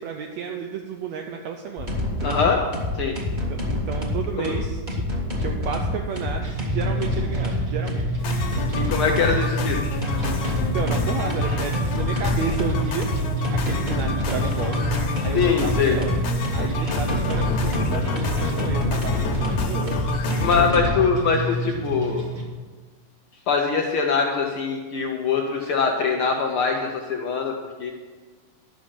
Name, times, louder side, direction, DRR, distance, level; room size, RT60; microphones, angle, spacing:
voice 1, 0.0-1.9 2.2-2.4 3.3-5.0 5.4-8.1 10.6-13.1 13.5-14.8 15.2-16.2 16.5-21.1, right 6 dB, 75° right, 3 dB, 1.9 m, -32 dB
sound 1, 1.8-20.9, left 2 dB, 20° right, 1.4 m, -27 dB
voice 2, 2.2-2.6 2.9-3.1 4.4-4.5 8.7-9.8 15.3-16.0 20.4-22.3 23.5-27.9, left 5 dB, 80° left, 2 dB, 1.2 m, -23 dB
sound 2, 6.4-22.4, right 2 dB, 50° right, 2.2 m, -29 dB
sound 3, 8.2-20.7, left 4 dB, 65° left, 2.1 m, -31 dB
11.5 x 6.5 x 7.2 m, 1.4 s
omnidirectional pair, 3.5 m